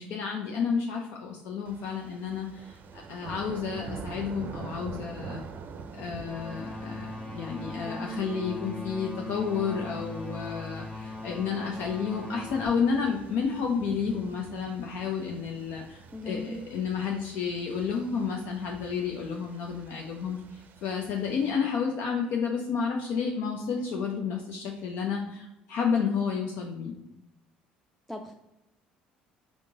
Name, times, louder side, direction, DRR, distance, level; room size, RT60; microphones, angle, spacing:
voice 1, 0.0-5.4 6.0-27.0, left 6 dB, 65° left, 0 dB, 0.6 m, -31 dB
sound 1, 1.7-21.5, right 5 dB, 50° right, 0.5 m, -46 dB
sound 2, 6.2-12.7, left 2 dB, 20° left, 1.3 m, -39 dB
voice 2, 7.9-8.2 16.1-16.6 28.1-28.3, left 1 dB, ahead, 2 dB, 0.4 m, -37 dB
3.7 x 3.5 x 3.7 m, 0.90 s
hypercardioid pair, 70°, 4 cm